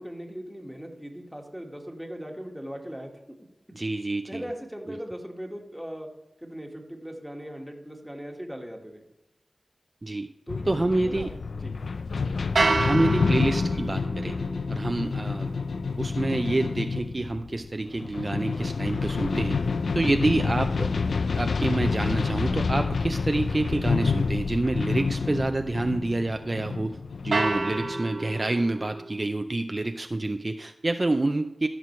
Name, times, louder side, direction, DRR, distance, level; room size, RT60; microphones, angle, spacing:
voice 1, 0.0-3.4 4.3-6.1 6.4-9.1 10.5-11.7 12.1-12.4, equal, ahead, 1 dB, 1.6 m, -39 dB
voice 2, 3.7-4.4 4.9-5.0 10.0-10.3 10.7-11.3 12.6-14.4 14.7-15.5 16.0-19.6 19.9-20.9 21.3-27.0 27.2-31.7, right 2 dB, 35° right, 7 dB, 0.4 m, -27 dB
sound 1, 10.5-28.0, left 4 dB, 90° left, 0.3 m, -28 dB
sound 2, 12.6-18.7 27.3-29.2, right 3 dB, 80° right, 0.9 m, -31 dB
14.0 x 6.0 x 3.2 m, 0.95 s
wide cardioid pair, 65°, 0 cm